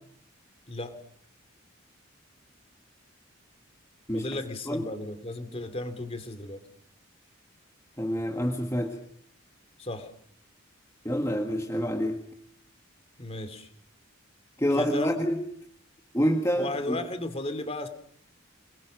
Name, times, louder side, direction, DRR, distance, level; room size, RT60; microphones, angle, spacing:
voice 1, 0.7-1.0 4.1-6.6 9.8-10.1 13.2-13.7 14.7-15.1 16.6-17.9, left 2 dB, 30° left, 9 dB, 2.7 m, -35 dB
voice 2, 8.0-9.0 11.0-12.2 14.6-15.4 16.1-17.0, equal, 15° left, 1 dB, 1.9 m, -27 dB
28.0 x 21.5 x 6.5 m, 0.66 s
head